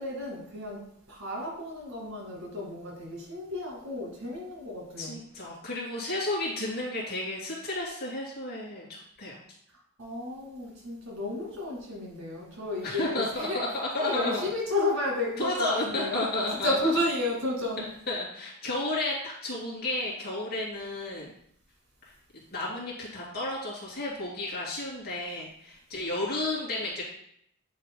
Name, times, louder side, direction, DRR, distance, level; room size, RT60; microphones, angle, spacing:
voice 1, 0.0-5.2 10.0-13.6 14.0-16.2 16.6-17.9, left 1 dB, 60° right, -3 dB, 2.2 m, -32 dB
voice 2, 5.0-9.4 12.8-14.4 15.4-16.8 18.1-21.3 22.0-22.1 22.5-27.0, left 2 dB, 45° left, -5 dB, 2.8 m, -32 dB
9.9 x 5.1 x 2.2 m, 0.70 s
head